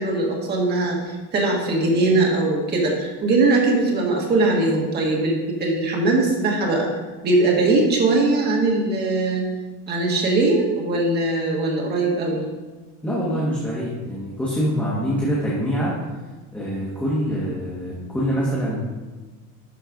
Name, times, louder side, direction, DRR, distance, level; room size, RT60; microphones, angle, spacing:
voice 1, 0.0-6.9 7.2-9.5 9.9-12.4, right 2 dB, 25° right, -1 dB, 1.7 m, -20 dB
voice 2, 13.0-16.0 16.5-18.8, equal, 5° left, -7 dB, 1.4 m, -24 dB
11.5 x 4.5 x 5.1 m, 1.2 s
cardioid pair, 180°, 38 cm